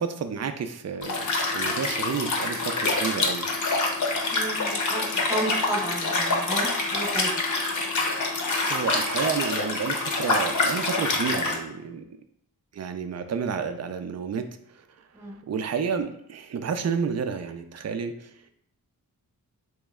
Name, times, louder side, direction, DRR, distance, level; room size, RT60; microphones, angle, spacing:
voice 1, 0.0-3.5 8.6-12.0 12.7-14.4 14.7-14.8 15.5-18.3, right 6 dB, 45° right, 9 dB, 0.4 m, -30 dB
Liquid, 1.0-11.6, left 3 dB, 55° left, 0.7 m, -26 dB
voice 2, 4.3-7.3 15.1-15.4, right 1 dB, 10° right, -1 dB, 0.9 m, -32 dB
3.1 x 3.0 x 3.5 m, 0.71 s
wide cardioid pair, 90°, 37 cm